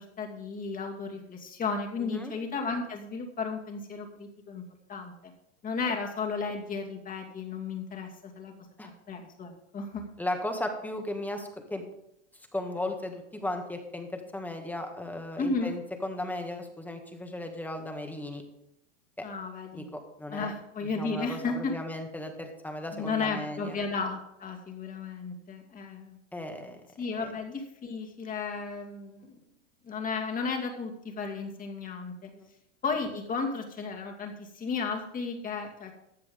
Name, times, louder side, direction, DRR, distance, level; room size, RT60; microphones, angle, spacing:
voice 1, 0.0-4.6 4.9-5.3 5.6-8.5 9.1-10.1 15.4-15.7 19.2-19.9 20.3-21.7 22.9-26.2 27.0-29.3 29.8-32.3 32.8-36.0, left 4 dB, 25° left, 2 dB, 2.6 m, -34 dB
voice 2, 2.0-2.3 8.8-8.9 10.2-11.8 12.4-18.4 19.2-19.3 19.7-20.5 20.9-23.8 26.3-26.8 27.2-27.3 32.3-32.5, left 1 dB, 5° left, 4 dB, 2.0 m, -36 dB
15.5 x 9.6 x 3.8 m, 0.80 s
hypercardioid pair, 115°, 35 cm